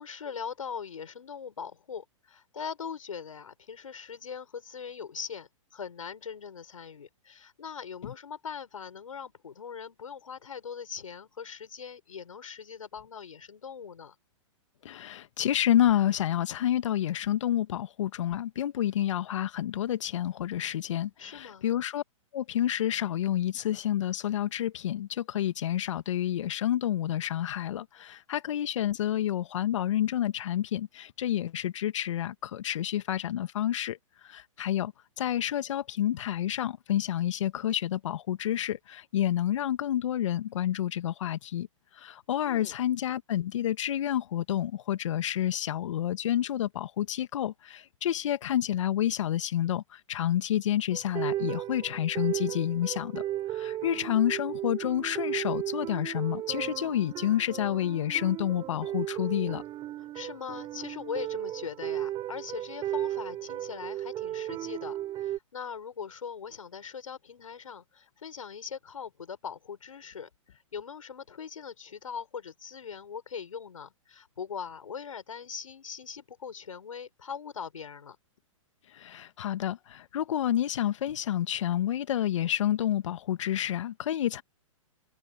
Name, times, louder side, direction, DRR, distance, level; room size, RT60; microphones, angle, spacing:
voice 1, 0.0-14.1 21.2-21.7 42.4-42.8 60.0-78.2, left 6 dB, 80° left, 6.7 m, -41 dB
voice 2, 14.9-22.0 22.3-34.0 34.3-34.9 35.2-41.7 42.0-49.8 50.1-53.2 53.5-59.6 79.0-84.4, left 11 dB, 65° left, 1.7 m, -29 dB
sound 1, 50.9-65.4, right 13 dB, 25° right, 4.1 m, -35 dB
hypercardioid pair, 120°, 17 cm